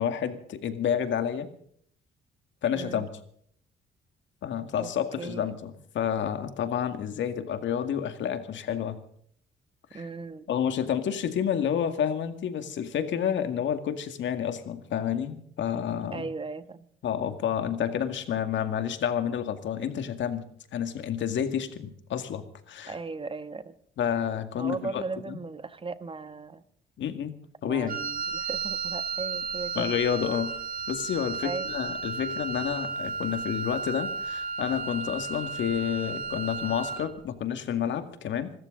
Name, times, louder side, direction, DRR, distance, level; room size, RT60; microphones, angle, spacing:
voice 1, 0.0-1.5 2.6-3.1 4.4-9.0 9.9-10.0 10.5-16.3 17.0-22.9 24.0-25.4 27.0-27.3 27.6-28.0 29.8-30.5 30.9-38.5, left 8 dB, 70° left, 8 dB, 2.1 m, -29 dB
voice 2, 2.7-3.1 4.8-5.6 9.9-10.5 16.1-16.9 22.9-23.8 24.6-26.6 27.6-29.9 31.4-31.7, right 4 dB, 25° right, 12 dB, 1.3 m, -37 dB
Wind instrument woodwind instrument, 27.9-37.1, right 4 dB, 45° right, 2.3 m, -33 dB
25.5 x 13.5 x 3.9 m, 0.63 s
cardioid pair, 90°, 20 cm